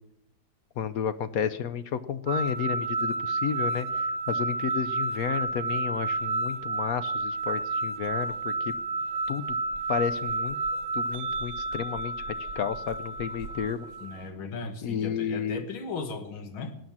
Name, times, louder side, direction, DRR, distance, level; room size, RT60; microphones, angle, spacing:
voice 1, 0.8-8.7 9.3-9.6 9.9-10.6 10.9-13.9 14.8-15.6, left 8 dB, 60° left, 13 dB, 0.9 m, -32 dB
sound 1, 2.3-14.2, right 2 dB, 60° right, 1.4 m, -31 dB
voice 2, 14.0-16.8, left 4 dB, 90° left, 8 dB, 2.4 m, -37 dB
19.0 x 9.1 x 7.2 m, 0.81 s
omnidirectional pair, 2.2 m